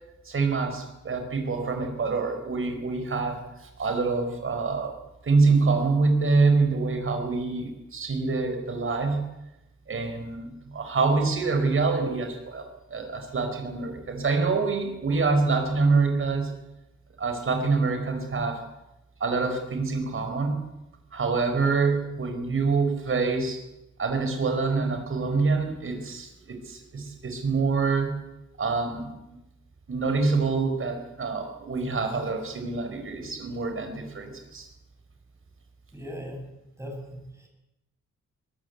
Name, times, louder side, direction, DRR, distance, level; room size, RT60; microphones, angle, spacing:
voice 1, 0.2-4.9 5.2-9.3 9.9-16.5 17.2-18.6 19.2-20.6 21.1-23.6 24.0-28.2 28.6-29.4 29.9-34.7, right 4 dB, 45° right, 6 dB, 5.1 m, -26 dB
voice 2, 35.9-36.4 36.8-37.5, equal, 10° right, 2 dB, 7.1 m, -39 dB
23.0 x 18.0 x 8.4 m, 0.91 s
wide cardioid pair, 160°, 30 cm